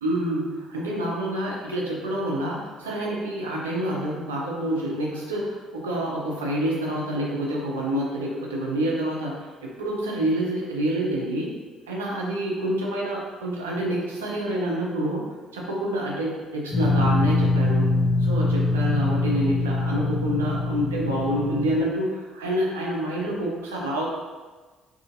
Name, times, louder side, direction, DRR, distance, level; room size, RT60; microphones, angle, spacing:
voice 1, 0.0-11.5 11.9-17.9 18.2-24.0, right 1 dB, 85° right, -3 dB, 0.4 m, -27 dB
sound 1, 16.7-21.8, left 2 dB, 40° left, 0.7 m, -23 dB
2.7 x 2.5 x 2.6 m, 1.3 s
figure-of-eight pair, 50°, 0 cm